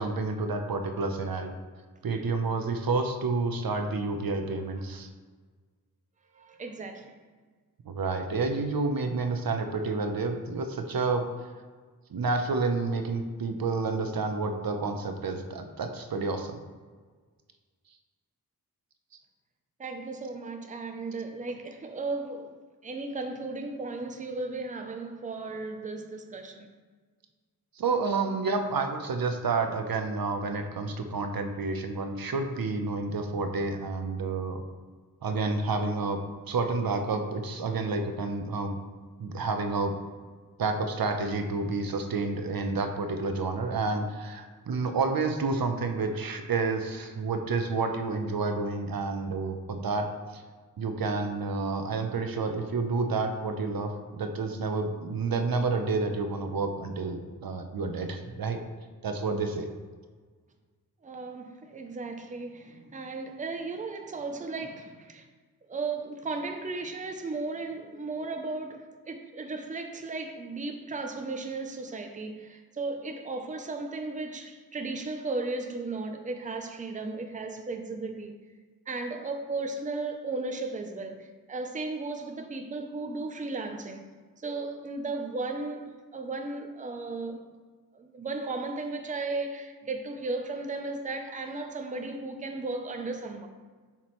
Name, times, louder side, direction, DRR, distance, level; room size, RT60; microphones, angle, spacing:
voice 1, 0.0-1.5 2.0-5.1 7.9-11.2 12.1-16.6 27.8-34.6 35.2-36.2 36.5-38.8 39.2-39.9 40.6-50.1 50.8-58.6 59.0-59.7, right 3 dB, 75° right, 0.7 m, -29 dB
voice 2, 4.4-4.8 6.3-7.2 19.8-22.5 22.8-26.7 61.0-65.3 65.7-78.4 78.9-87.4 87.9-93.5, right 3 dB, 20° right, 0.5 m, -35 dB
7.3 x 5.9 x 3.1 m
wide cardioid pair, 120°, 36 cm